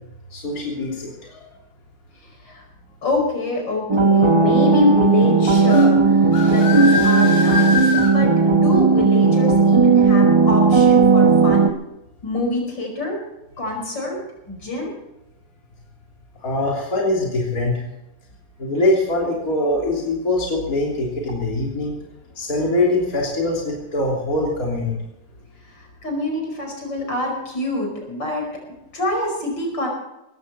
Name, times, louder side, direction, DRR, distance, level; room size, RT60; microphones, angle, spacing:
voice 1, 0.3-1.4 16.4-17.7 18.6-21.9 22.4-24.9, left 2 dB, 50° left, -3 dB, 3.8 m, -22 dB
voice 2, 3.0-11.7 12.2-13.2 13.6-14.2 14.5-14.9 26.0-28.4 28.9-29.9, left 1 dB, 80° left, 1 dB, 5.8 m, -26 dB
sound 1, 3.9-11.7, right 4 dB, 20° right, 0.8 m, -15 dB
sound 2, 5.6-5.9 6.3-8.1, left 4 dB, 30° left, 5.0 m, -23 dB
19.0 x 15.5 x 4.2 m, 0.90 s
omnidirectional pair, 1.9 m